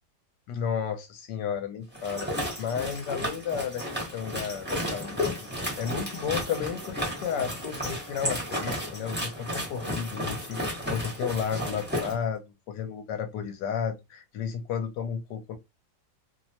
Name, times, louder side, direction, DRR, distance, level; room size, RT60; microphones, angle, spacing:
voice 1, 0.5-15.6, left 7 dB, 70° left, 1.2 m, -33 dB
sound 1, 1.9-12.1, equal, 10° right, 0.5 m, -33 dB
3.1 x 2.1 x 2.7 m
omnidirectional pair, 2.1 m